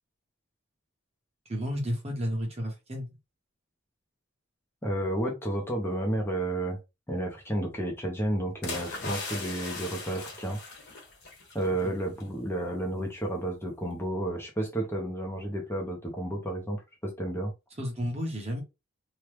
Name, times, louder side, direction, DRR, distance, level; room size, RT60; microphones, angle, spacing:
voice 1, 1.5-3.1 11.8-11.9 17.7-18.6, equal, 30° right, 1.2 m, -32 dB
voice 2, 4.8-6.8 7.1-10.6 11.5-16.8 17.0-17.5, right 1 dB, 10° left, 0.7 m, -31 dB
sound 1, 8.6-11.7 12.0-12.2, left 3 dB, 55° left, 1.4 m, -38 dB
3.0 x 2.3 x 3.3 m
head